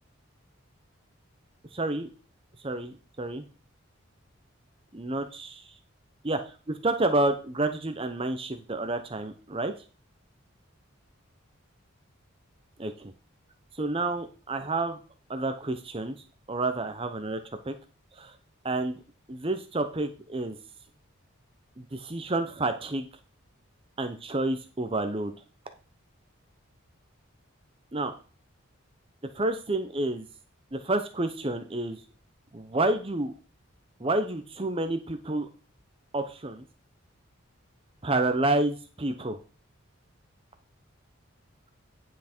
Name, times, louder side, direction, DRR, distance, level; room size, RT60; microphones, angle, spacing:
voice 1, 1.7-2.1 2.6-3.4 4.9-5.7 6.2-9.7 12.8-13.1 13.7-15.0 15.3-16.2 16.5-17.4 17.6-17.7 18.1-18.4 18.6-19.0 19.3-20.6 21.8-23.1 24.0-25.3 27.9-28.1 29.3-30.3 30.7-32.0 32.5-33.3 34.0-35.5 36.1-36.6 38.0-39.4, right 2 dB, 25° right, 8 dB, 0.8 m, -29 dB
10.0 x 6.0 x 4.4 m, 0.38 s
head